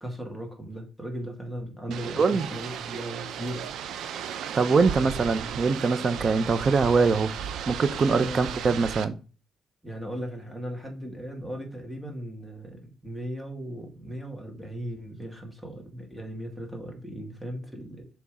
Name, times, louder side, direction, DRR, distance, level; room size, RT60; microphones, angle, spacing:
voice 1, 0.0-3.7 8.1-8.5 9.8-18.1, equal, 5° right, 2.3 m, -37 dB
voice 2, 1.9-2.5 4.5-7.3 7.7-9.2, right 4 dB, 40° right, 0.8 m, -23 dB
sound 1, 1.9-9.1, right 8 dB, 80° right, 0.6 m, -35 dB
7.2 x 3.5 x 4.9 m
cardioid pair, 90°, 0 cm